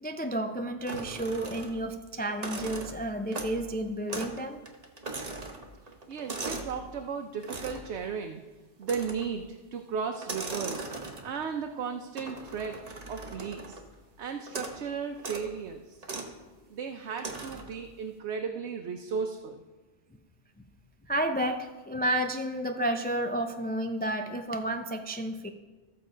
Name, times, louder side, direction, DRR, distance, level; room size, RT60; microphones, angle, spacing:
voice 1, 0.0-4.6 21.1-25.5, right 1 dB, 15° left, 5 dB, 0.3 m, -31 dB
sound 1, 0.9-1.9 2.3-3.7 4.1-4.4 4.7-6.8 7.4-7.9 8.8-9.4 10.2-11.5 12.2-13.9 14.5-14.8 15.2-15.5 16.0-16.3 17.2-17.8, right 3 dB, 35° right, 1.1 m, -39 dB
voice 2, 6.1-8.4 8.8-10.9 11.2-12.8 13.1-13.8 14.2-16.0 16.7-19.7, right 6 dB, 75° right, 4 dB, 1.0 m, -35 dB
14.0 x 6.8 x 5.0 m, 1.2 s
omnidirectional pair, 1.2 m